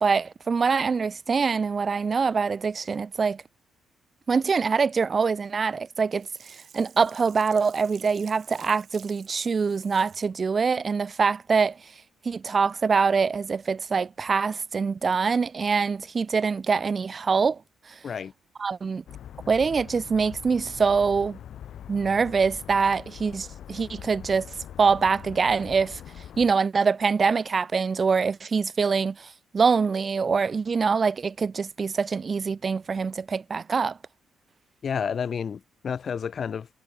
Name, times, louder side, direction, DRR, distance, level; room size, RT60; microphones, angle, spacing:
voice 1, 0.0-3.4 4.3-6.3 6.7-11.8 12.2-17.6 18.6-19.0 19.5-21.4 21.9-24.5 24.8-26.0 26.4-29.3 29.5-34.0, right 5 dB, 35° right, 0.8 m, -24 dB
Sink (filling or washing), 6.1-10.3 10.8-10.9, right 8 dB, 55° right, 2.6 m, -51 dB
sound 1, 19.1-26.5, left 10 dB, 70° left, 2.2 m, -43 dB
voice 2, 34.8-36.7, left 7 dB, 50° left, 0.5 m, -30 dB
cardioid pair, 90°, 0 cm